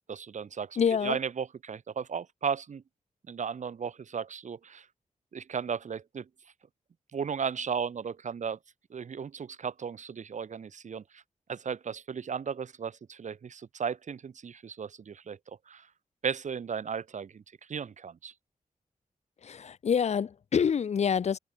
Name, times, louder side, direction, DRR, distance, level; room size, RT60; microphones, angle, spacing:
voice 1, 0.1-2.8 3.3-4.9 5.3-6.3 7.1-8.6 8.9-11.2 11.5-15.4 15.7-15.9 16.2-17.4 17.7-18.3, right 6 dB, 60° right, 1.8 m, -35 dB
voice 2, 0.8-1.2 19.4-21.4, left 7 dB, 55° left, 0.6 m, -27 dB
wide cardioid pair, 130°, 14 cm